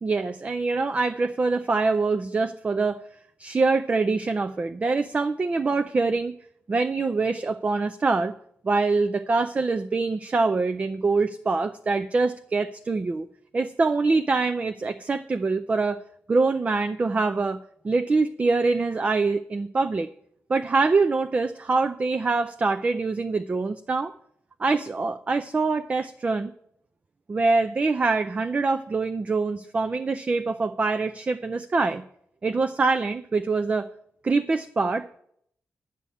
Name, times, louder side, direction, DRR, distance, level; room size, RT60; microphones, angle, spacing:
voice 1, 0.0-3.0 3.4-6.4 6.7-8.3 8.6-13.3 13.5-16.0 16.3-17.6 17.8-20.1 20.5-24.1 24.6-26.5 27.3-32.0 32.4-33.9 34.2-35.1, right 3 dB, 30° right, 9 dB, 0.4 m, -24 dB
9.7 x 5.7 x 8.5 m, 0.70 s
wide cardioid pair, 125°, 5 cm